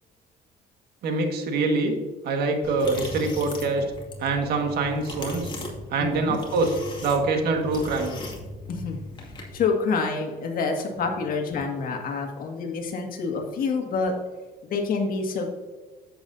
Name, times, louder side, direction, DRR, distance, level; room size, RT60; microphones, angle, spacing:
voice 1, 1.0-2.0 2.2-3.9 4.2-5.5 5.9-6.8 7.0-8.2, right 3 dB, 75° right, 4 dB, 1.7 m, -24 dB
sound 1, 2.6-9.6, left 1 dB, 30° left, 2.3 m, -38 dB
voice 2, 6.0-6.4 8.7-9.0 9.5-14.1 14.6-15.5, left 4 dB, 60° left, 2 dB, 1.9 m, -27 dB
10.5 x 8.2 x 2.7 m, 1.3 s
cardioid pair, 110°, 17 cm